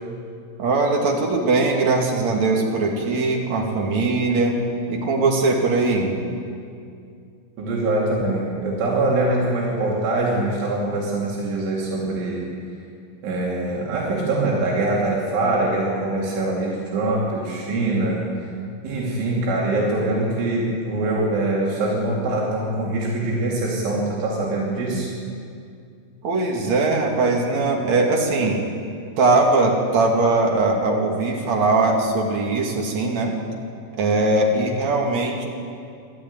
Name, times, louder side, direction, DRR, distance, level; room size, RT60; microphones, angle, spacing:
voice 1, 0.6-4.6 4.9-6.1 26.2-28.7 29.2-33.3 34.0-35.4, right 3 dB, 45° right, 0 dB, 3.1 m, -20 dB
voice 2, 7.6-12.5 13.2-18.3 18.8-25.1, right 2 dB, 80° right, -4 dB, 5.2 m, -23 dB
24.0 x 12.5 x 9.6 m, 2.4 s
omnidirectional pair, 5.4 m